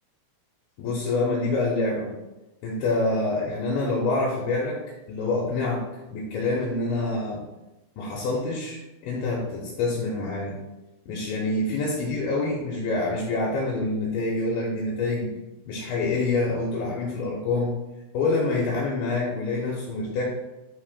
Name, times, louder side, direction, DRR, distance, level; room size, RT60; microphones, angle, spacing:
voice 1, 0.8-2.1 2.6-4.8 5.1-5.8 6.1-7.4 8.0-10.6 11.1-15.3 15.7-17.7 18.1-20.2, left 2 dB, 75° left, -3 dB, 2.9 m, -26 dB
11.5 x 4.1 x 2.2 m, 1.0 s
omnidirectional pair, 5.9 m